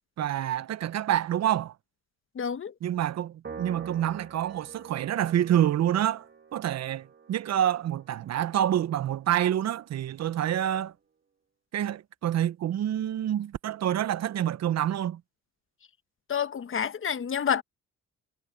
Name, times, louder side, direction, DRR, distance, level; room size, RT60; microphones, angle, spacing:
voice 1, 0.2-1.7 2.8-6.2 6.5-10.9 11.7-15.2, right 11 dB, 60° right, 0.8 m, -27 dB
voice 2, 2.3-2.7 16.3-17.6, left 8 dB, 45° left, 1.1 m, -28 dB
Piano, 3.4-10.0, right 6 dB, 40° right, 2.5 m, -47 dB
cardioid pair, 90°, 30 cm